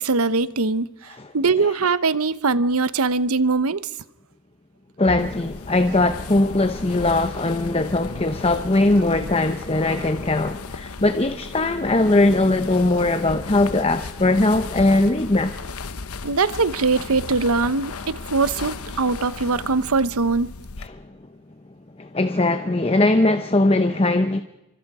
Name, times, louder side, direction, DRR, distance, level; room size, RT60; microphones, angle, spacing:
voice 1, 0.0-3.9 16.2-20.5, right 4 dB, 75° right, 0.9 m, -22 dB
voice 2, 5.0-15.8 18.9-19.0 20.8-21.1 22.0-24.4, left 2 dB, 25° left, 0.7 m, -20 dB
sound 1, 5.2-20.9, left 4 dB, 80° left, 1.0 m, -36 dB
28.0 x 25.0 x 4.9 m
head